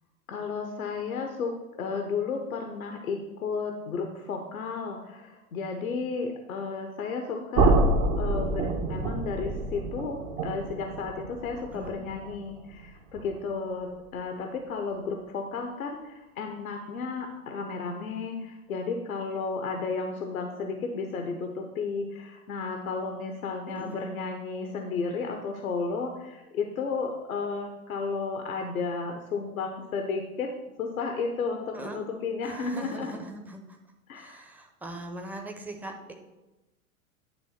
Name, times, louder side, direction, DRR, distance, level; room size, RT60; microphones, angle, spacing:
voice 1, 0.3-1.5 1.8-7.8 8.2-30.5 30.8-33.1 34.1-34.4, left 4 dB, 70° left, 4 dB, 1.0 m, -33 dB
sound 1, 7.5-13.4, right 2 dB, 30° right, 0.9 m, -28 dB
voice 2, 23.8-24.1 31.7-32.0 32.4-33.8 34.1-36.1, right 1 dB, 5° right, 3 dB, 0.8 m, -40 dB
10.5 x 3.5 x 5.7 m, 1.1 s
figure-of-eight pair, 100°, 44 cm